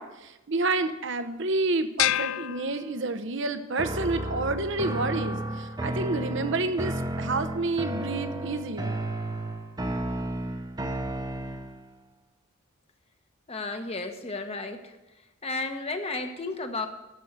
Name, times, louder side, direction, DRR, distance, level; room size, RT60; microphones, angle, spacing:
voice 1, 0.0-9.0, right 3 dB, 65° right, 10 dB, 0.8 m, -29 dB
sound 1, 2.0-3.5, left 13 dB, 75° left, 0.3 m, -29 dB
sound 2, 3.8-11.8, right 1 dB, 20° right, 0.9 m, -32 dB
voice 2, 13.5-15.0 15.4-16.9, left 3 dB, 30° left, 6 dB, 1.1 m, -33 dB
13.0 x 5.5 x 7.9 m, 1.0 s
head